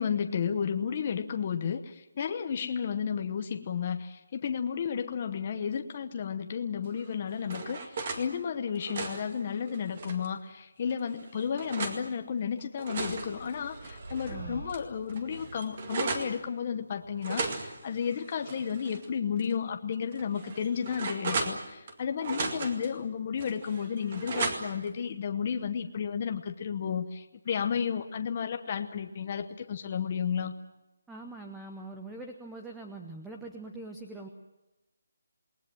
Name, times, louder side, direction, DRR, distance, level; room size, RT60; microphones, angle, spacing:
voice 1, 0.0-30.5, left 7 dB, 25° left, 6 dB, 0.9 m, -32 dB
sound 1, 7.0-8.2 8.7-10.3 10.9-12.0 12.6-14.3 14.7-14.8 15.1-16.3 17.2-19.1 19.4-19.5 20.1-21.9 22.2-22.9 23.4-24.9, right 4 dB, 25° right, 2.1 m, -36 dB
sound 2, 11.2-11.4 12.9-17.7, right 2 dB, 90° right, 6.8 m, -47 dB
voice 2, 14.3-14.6 31.1-34.3, right 2 dB, 5° right, 2 dB, 0.9 m, -43 dB
28.5 x 20.0 x 7.6 m, 1.0 s
hypercardioid pair, 180°, 0 cm